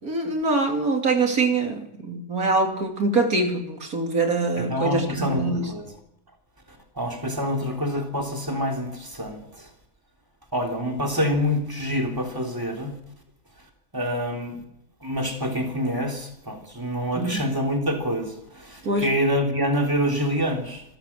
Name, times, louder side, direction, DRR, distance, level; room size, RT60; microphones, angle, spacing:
voice 1, 0.0-5.7 17.1-17.4 18.8-19.1, right 3 dB, 75° right, 4 dB, 3.3 m, -24 dB
voice 2, 4.6-5.9 7.0-9.7 10.5-12.9 13.9-14.6 15.0-20.8, equal, 15° right, 2 dB, 3.7 m, -26 dB
26.5 x 14.5 x 7.5 m, 0.81 s
omnidirectional pair, 1.5 m